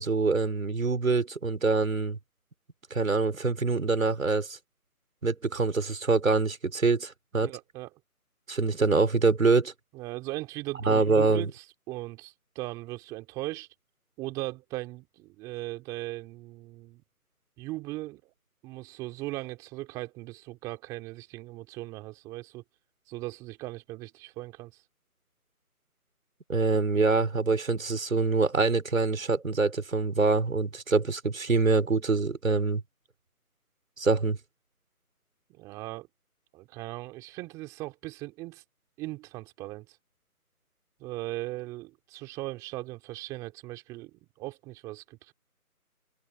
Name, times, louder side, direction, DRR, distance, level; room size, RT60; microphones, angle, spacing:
voice 1, 0.0-2.2 2.9-4.6 5.2-7.5 8.5-9.7 10.8-11.5 26.5-32.8 34.0-34.4, right 4 dB, 60° right, 4.9 m, -25 dB
voice 2, 7.3-7.9 9.9-13.7 14.2-17.0 17.6-18.3 18.6-22.6 23.1-24.8 35.5-36.1 36.5-38.6 39.0-40.0 41.0-45.3, right 19 dB, 5° right, 3.2 m, -38 dB
figure-of-eight pair, 165°, 45 cm